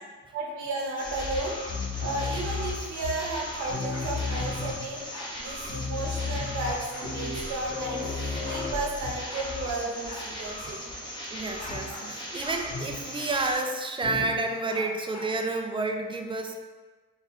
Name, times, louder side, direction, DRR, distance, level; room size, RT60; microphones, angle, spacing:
voice 1, 0.3-1.6 2.0-5.0 5.4-8.0 8.4-10.9, right 2 dB, 75° right, -2 dB, 1.1 m, -33 dB
sound 1, 1.0-3.4 3.7-5.0 5.4-5.5 5.6-9.8 10.0-10.3 11.7-11.9 12.7-13.1 14.0-14.4, left 4 dB, 45° left, 1.4 m, -34 dB
sound 2, 1.0-13.6, equal, 15° left, 1.0 m, -39 dB
sound 3, 3.5-4.5 5.1-5.3 6.6-7.1 8.0-8.1 8.3-8.7 9.3-9.5 10.0-10.3 10.6-10.7 11.6-12.1 12.4-12.6 13.3-13.5 14.7-15.3, left 3 dB, 65° left, 1.1 m, -43 dB
voice 2, 11.3-16.6, right 2 dB, 15° right, 4 dB, 0.4 m, -30 dB
4.0 x 2.4 x 4.0 m, 1.4 s
cardioid pair, 90°, 30 cm